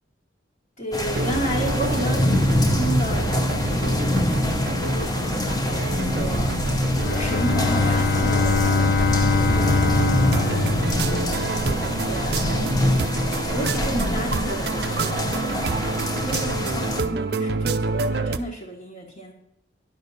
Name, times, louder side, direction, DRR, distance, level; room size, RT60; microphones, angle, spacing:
voice 1, 0.8-6.5 7.0-10.3 10.9-12.7 13.5-19.3, right 1 dB, 40° left, -4 dB, 1.4 m, -33 dB
sound 1, 0.9-17.0, left 1 dB, 20° left, 0.8 m, -25 dB
sound 2, 1.1-18.4, right 3 dB, 55° right, 0.5 m, -28 dB
Bowed string instrument, 6.8-11.7, left 4 dB, 60° left, 0.6 m, -23 dB
10.5 x 6.8 x 4.0 m, 0.83 s
head